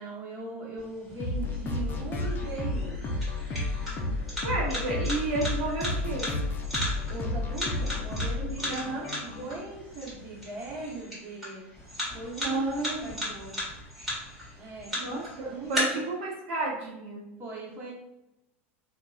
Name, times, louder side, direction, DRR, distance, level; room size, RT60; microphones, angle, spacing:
voice 1, 0.0-3.0 7.0-11.6 12.1-13.5 14.6-15.1 15.4-16.1 17.4-17.9, right 3 dB, 30° right, -5 dB, 1.0 m, -39 dB
sound 1, 0.8-15.8, equal, ahead, 1.3 m, -38 dB
sound 2, 1.2-9.6, left 2 dB, 30° left, 0.5 m, -32 dB
voice 2, 4.4-6.3 8.7-9.1 12.4-13.2 14.9-17.2, right 2 dB, 75° right, -4 dB, 0.8 m, -31 dB
2.7 x 2.2 x 2.4 m, 0.89 s
hypercardioid pair, 115°, 7 cm